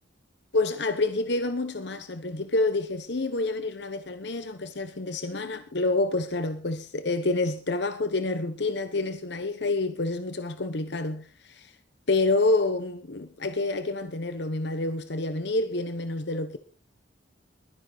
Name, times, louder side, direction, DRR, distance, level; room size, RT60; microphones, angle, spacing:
voice 1, 0.5-11.7 12.1-16.6, left 2 dB, 60° left, 1.0 m, -28 dB
21.5 x 10.5 x 4.0 m
head